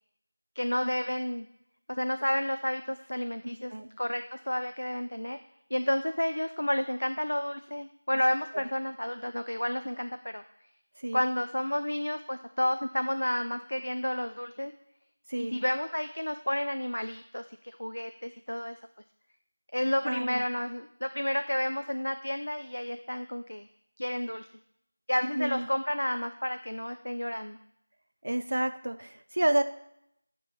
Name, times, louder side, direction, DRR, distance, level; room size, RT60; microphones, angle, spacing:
voice 1, 0.6-1.5 1.9-5.4 5.7-10.4 11.1-14.7 15.4-18.8 19.7-23.7 24.0-24.5 25.1-27.6, left 1 dB, 80° left, 8 dB, 0.4 m, -31 dB
voice 2, 20.0-20.4 25.3-25.7 28.2-29.6, right 1 dB, 55° right, 9 dB, 0.6 m, -30 dB
8.1 x 3.0 x 6.0 m, 0.76 s
figure-of-eight pair, 175°, 0 cm